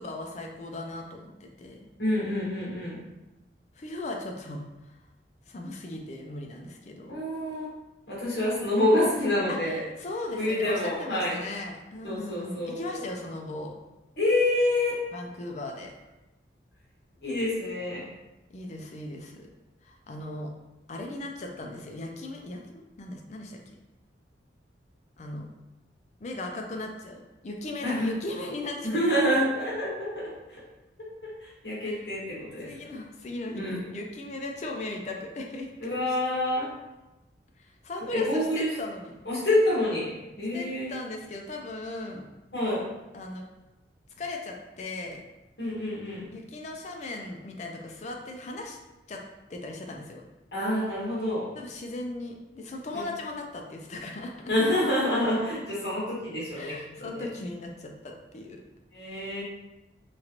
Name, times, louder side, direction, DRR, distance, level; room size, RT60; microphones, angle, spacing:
voice 1, 0.0-1.9 3.8-5.0 5.5-7.2 9.5-13.7 15.1-15.9 18.5-19.5 19.8-20.5 20.9-23.6 25.2-25.5 26.2-29.0 31.8-32.0 32.6-35.7 36.0-36.2 37.6-39.2 40.5-42.3 43.1-43.4 44.2-45.2 46.3-48.8 49.1-49.2 49.5-50.2 51.5-54.5 56.6-58.6, left 2 dB, 40° left, 2 dB, 0.4 m, -38 dB
voice 2, 2.0-3.0 7.1-7.7 8.1-9.8 10.4-11.4 12.0-13.0 14.2-15.0 17.2-18.0 27.8-28.1 28.8-30.3 31.2-33.0 33.6-33.8 35.8-36.7 38.1-38.7 39.2-40.9 42.5-42.8 45.6-46.3 50.5-51.5 54.5-57.2 58.9-59.4, left 1 dB, 60° left, -6 dB, 1.2 m, -27 dB
3.1 x 2.4 x 2.9 m, 1.0 s
head